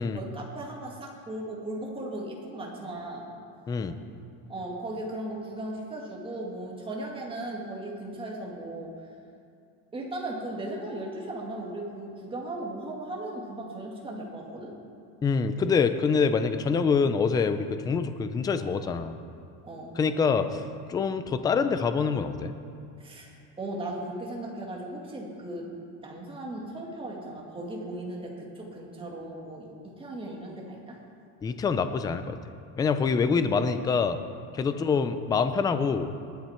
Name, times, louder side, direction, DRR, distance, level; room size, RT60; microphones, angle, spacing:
voice 1, 0.0-3.2 4.5-8.9 9.9-14.7 19.6-19.9 23.0-23.3 23.6-25.7 26.0-31.0 34.7-34.8, right 1 dB, 15° right, -2 dB, 2.1 m, -37 dB
voice 2, 15.2-19.2 20.0-20.6 20.9-22.5 31.4-32.4 32.8-34.2 34.5-36.1, left 5 dB, 10° left, 10 dB, 0.3 m, -25 dB
20.0 x 9.2 x 4.4 m, 2.5 s
cardioid pair, 160°, 36 cm